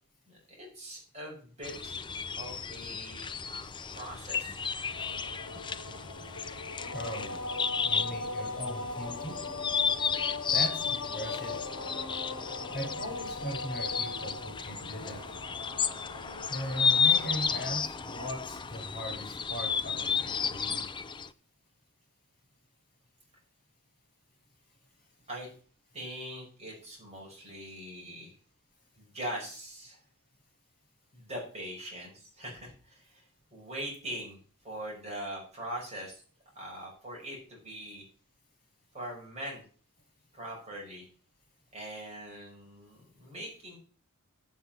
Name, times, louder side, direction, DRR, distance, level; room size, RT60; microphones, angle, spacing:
voice 1, 0.3-2.0 2.4-3.3 3.9-4.6 25.3-25.5 25.9-28.3 29.0-30.0 31.1-33.2 33.5-34.4 34.6-36.2 36.5-38.0 38.9-39.6 40.3-41.0 41.7-43.8, right 1 dB, 30° right, -2 dB, 5.3 m, -42 dB
sound 1, 1.6-21.3, left 6 dB, 20° left, 0.4 m, -33 dB
sound 2, 4.8-17.4, left 2 dB, 70° left, 1.5 m, -40 dB
voice 2, 6.9-7.4 7.8-9.4 10.5-11.6 12.7-15.2 16.5-20.9, equal, 45° left, 2 dB, 5.5 m, -39 dB
7.9 x 7.2 x 7.0 m, 0.40 s
head